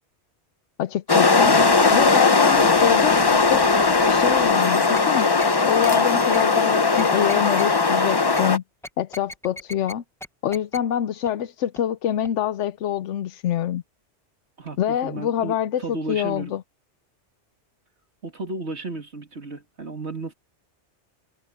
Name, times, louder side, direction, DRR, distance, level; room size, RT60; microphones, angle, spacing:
voice 1, 0.8-1.5 1.9-3.6 4.1-5.3 5.7-8.6 9.0-10.0 10.4-13.8 14.8-16.6, left 10 dB, 85° left, 1.0 m, -25 dB
sound 1, 1.1-8.6, left 4 dB, 25° left, 0.7 m, -18 dB
sound 2, 1.4-2.1 2.5-4.5 4.9-5.1 5.4-5.5 5.8-6.0 6.3-6.5 7.0-7.7 8.3-8.4 8.8-9.9 10.2-10.3 10.5-10.8 11.3-11.4 11.8-11.9 12.2-12.3, left 1 dB, 5° left, 1.0 m, -38 dB
voice 2, 1.4-2.3 2.5-3.4 14.6-16.5 18.2-20.3, right 3 dB, 70° right, 3.0 m, -34 dB
omnidirectional pair, 1.2 m